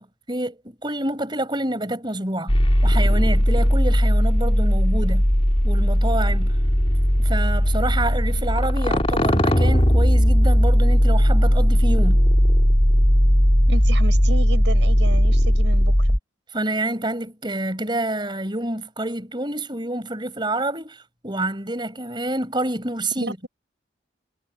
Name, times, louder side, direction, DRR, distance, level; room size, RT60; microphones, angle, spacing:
voice 1, 0.0-2.5 2.8-5.2 5.6-6.5 7.2-12.2 16.5-23.5, right 1 dB, 25° right, 4.9 m, -28 dB
sound 1, 2.5-16.2, equal, 30° left, 2.8 m, -17 dB
voice 2, 13.7-16.2 23.2-23.5, right 1 dB, 70° right, 6.3 m, -32 dB
head